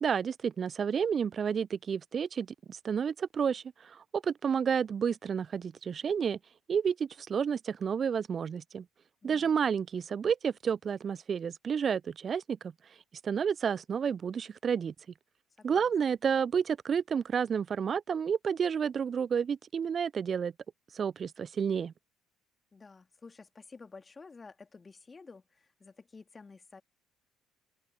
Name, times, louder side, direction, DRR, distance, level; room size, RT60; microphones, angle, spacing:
voice 1, 0.0-6.4 6.7-8.9 9.2-12.6 13.2-14.9 15.6-20.5 20.9-21.9, right 7 dB, 40° right, 0.5 m, -30 dB
voice 2, 9.2-9.6 15.6-15.9 22.7-26.8, left 4 dB, 25° left, 2.6 m, -52 dB
open air
figure-of-eight pair, 55°, 0 cm